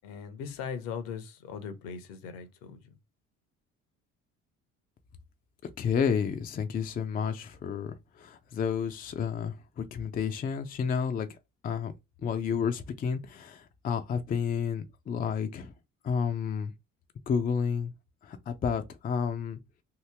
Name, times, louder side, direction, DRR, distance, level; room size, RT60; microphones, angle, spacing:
voice 1, 0.0-2.9 10.0-10.1, left 6 dB, 60° left, 0.9 m, -39 dB
voice 2, 5.6-11.3 11.6-11.9 12.2-15.7 16.0-16.7 17.3-17.9 18.2-19.6, left 6 dB, 20° left, 0.5 m, -31 dB
3.0 x 2.7 x 3.4 m
figure-of-eight pair, 50°, 40 cm